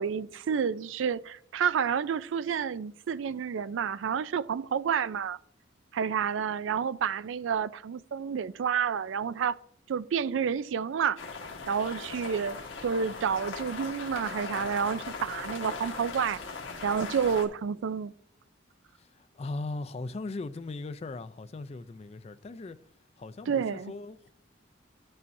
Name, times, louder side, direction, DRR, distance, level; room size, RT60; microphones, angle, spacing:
voice 1, 0.0-5.4 5.9-9.6 9.9-11.2 11.7-16.4 16.8-18.1 23.5-23.9, right 7 dB, 80° right, 0.4 m, -29 dB
sound 1, 11.2-17.5, left 4 dB, 90° left, 1.3 m, -39 dB
voice 2, 19.0-22.8 23.2-24.3, left 3 dB, 35° left, 0.4 m, -39 dB
13.5 x 5.5 x 2.6 m
head